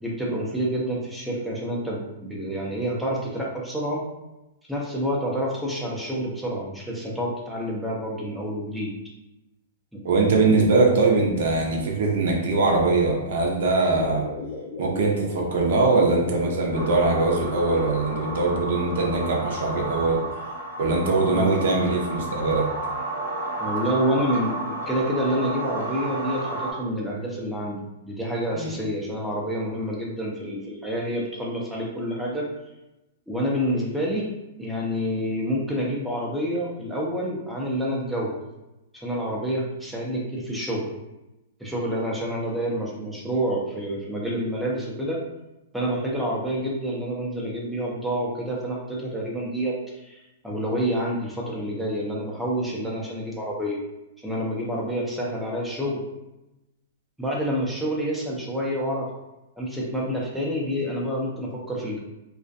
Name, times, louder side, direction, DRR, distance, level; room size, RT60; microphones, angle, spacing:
voice 1, 0.0-4.0 4.7-8.9 21.3-21.5 23.6-27.8 28.0-32.5 33.3-34.3 34.6-38.4 38.9-40.9 41.6-45.2 45.7-53.8 54.2-56.0 57.2-59.1 59.6-62.0, equal, ahead, -5 dB, 0.5 m, -28 dB
voice 2, 10.0-14.2 14.8-20.2 20.8-22.7 28.5-28.8, right 3 dB, 70° right, 0 dB, 0.6 m, -22 dB
sound 1, 13.8-20.0, left 3 dB, 55° left, 0.4 m, -36 dB
sound 2, 16.7-26.7, right 2 dB, 90° left, 1.0 m, -32 dB
2.4 x 2.2 x 2.5 m, 0.96 s
hypercardioid pair, 140°, 0 cm